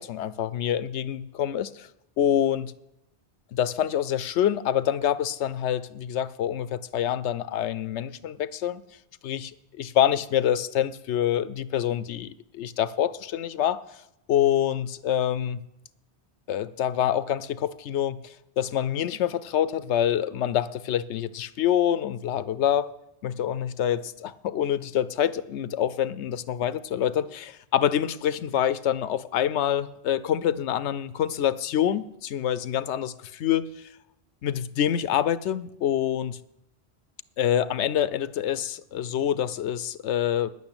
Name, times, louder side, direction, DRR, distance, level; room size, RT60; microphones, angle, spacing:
voice 1, 0.0-1.9 2.2-2.7 3.5-8.8 9.2-9.5 9.8-13.8 14.3-15.6 16.5-22.9 23.2-33.7 34.4-36.4 37.4-40.5, left 10 dB, 90° left, 0.9 m, -26 dB
10.5 x 8.5 x 8.7 m
omnidirectional pair, 1.1 m